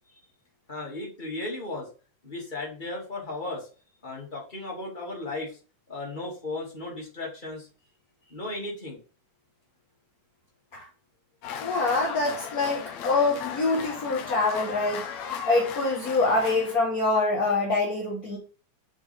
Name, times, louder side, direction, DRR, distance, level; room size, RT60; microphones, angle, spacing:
voice 1, 0.7-1.9 2.2-3.7 4.0-5.5 5.9-7.7 8.3-9.0 12.2-12.5, left 2 dB, 15° left, -3 dB, 2.6 m, -35 dB
sound 1, 11.4-16.8, left 8 dB, 70° left, 2.1 m, -36 dB
voice 2, 11.6-15.0 15.5-18.4, left 3 dB, 40° left, -2 dB, 1.5 m, -25 dB
7.3 x 5.3 x 3.6 m, 0.37 s
omnidirectional pair, 3.4 m